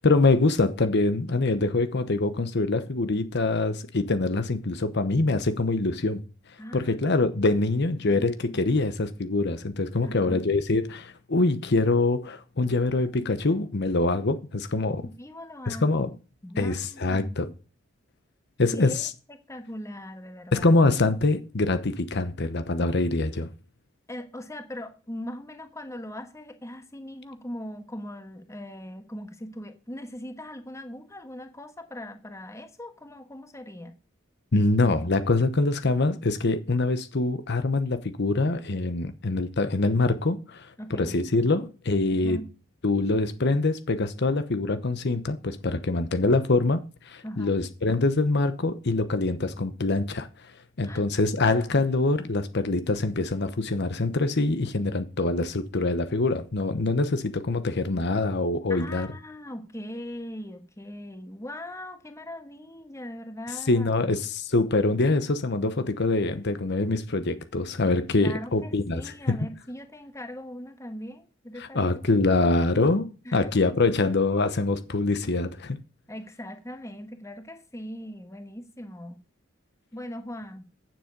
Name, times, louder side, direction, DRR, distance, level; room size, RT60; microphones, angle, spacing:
voice 1, 0.0-6.2 6.7-15.1 15.7-16.1 16.6-17.5 18.6-19.1 20.5-23.5 34.5-40.7 41.0-42.4 42.8-50.3 50.8-59.1 63.7-69.1 71.6-75.8, left 2 dB, 60° left, 1.0 m, -24 dB
voice 2, 6.6-7.0 8.0-8.6 10.0-10.5 15.0-16.1 16.4-17.4 18.7-19.1 19.5-20.7 24.1-34.0 40.8-41.1 42.1-42.5 47.2-47.6 50.8-51.0 58.7-64.2 68.2-71.9 73.2-73.5 76.1-79.2 79.9-80.6, left 1 dB, 15° left, 1.3 m, -40 dB
9.1 x 7.7 x 5.2 m
head